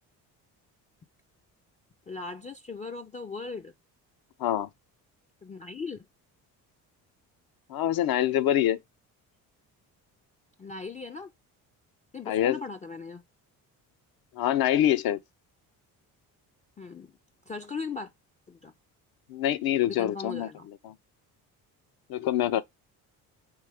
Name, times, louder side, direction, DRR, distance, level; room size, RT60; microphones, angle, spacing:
voice 1, 2.1-3.7 5.4-6.0 10.6-11.3 12.1-13.2 16.8-17.1 17.5-18.1 18.5-18.7 19.9-20.7, left 4 dB, 20° left, 0.3 m, -38 dB
voice 2, 7.7-8.8 12.3-12.6 14.4-15.2 19.3-20.5 20.8-20.9 22.1-22.6, left 11 dB, 65° left, 0.6 m, -25 dB
3.3 x 3.2 x 3.4 m
supercardioid pair, 70°, 40 cm